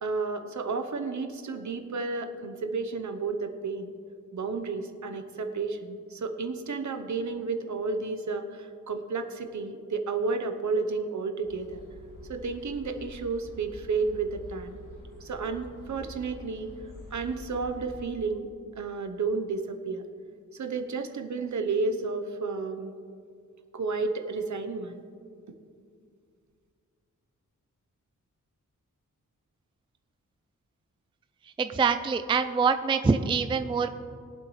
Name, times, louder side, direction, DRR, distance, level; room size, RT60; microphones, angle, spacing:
voice 1, 0.0-3.9 4.3-11.8 12.3-14.8 15.2-16.7 17.1-18.5 18.8-20.0 20.5-22.9 23.7-25.0, right 4 dB, 60° right, 7 dB, 1.0 m, -32 dB
sound 1, 11.4-18.0, equal, 75° left, 2.8 m, -47 dB
voice 2, 31.6-33.9, right 5 dB, 15° right, 9 dB, 0.3 m, -25 dB
21.5 x 7.9 x 3.2 m, 2.3 s
wide cardioid pair, 175°, 32 cm